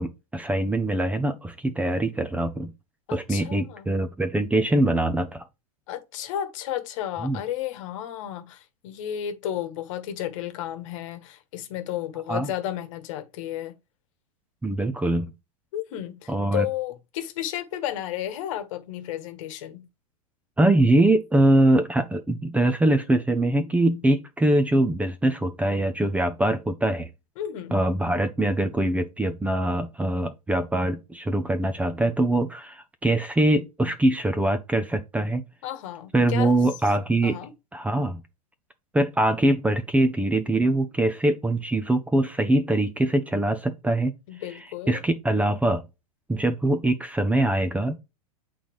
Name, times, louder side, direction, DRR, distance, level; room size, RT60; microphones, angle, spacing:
voice 1, 0.0-2.7 3.1-5.4 7.2-7.4 12.3-12.5 14.6-15.3 16.3-16.7 20.6-27.1 27.7-35.4 36.1-37.4 37.7-38.2 38.9-44.1 44.9-45.8 46.3-48.0, right 1 dB, 5° right, 0.7 m, -23 dB
voice 2, 3.1-3.9 5.9-13.8 15.7-19.9 27.4-27.8 35.6-36.6 37.2-37.5 44.3-45.0, left 11 dB, 55° left, 1.3 m, -33 dB
8.5 x 4.0 x 3.1 m
hypercardioid pair, 105°, 20 cm